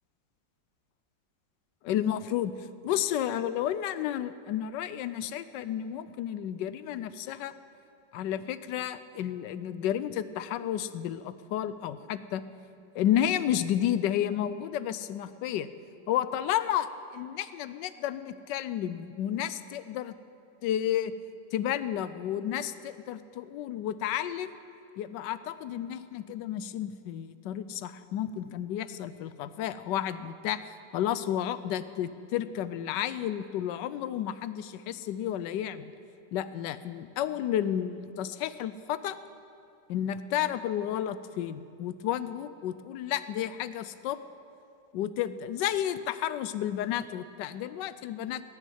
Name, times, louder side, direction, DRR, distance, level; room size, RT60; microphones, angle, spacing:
voice 1, 1.8-7.5 8.1-12.4 12.9-15.7 16.1-16.9 17.1-20.1 20.6-21.1 21.5-24.6 25.0-30.6 30.9-35.9 36.3-39.2 39.9-44.2 44.9-48.4, left 11 dB, 75° left, 14 dB, 1.2 m, -31 dB
18.5 x 7.3 x 9.3 m, 2.5 s
omnidirectional pair, 2.0 m